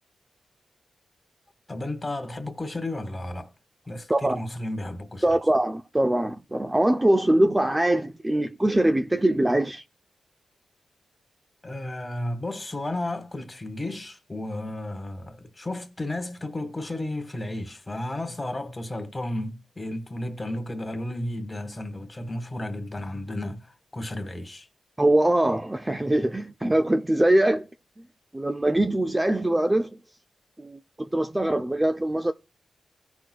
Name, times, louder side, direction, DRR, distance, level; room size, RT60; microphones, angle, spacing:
voice 1, 1.7-3.5 3.9-5.4 11.6-24.7, left 1 dB, 20° left, 1.6 m, -33 dB
voice 2, 4.1-4.4 5.2-9.8 25.0-27.7 28.3-30.0 30.6-32.3, right 1 dB, 15° right, 0.5 m, -22 dB
16.5 x 6.1 x 2.3 m
cardioid pair, 65°, 0 cm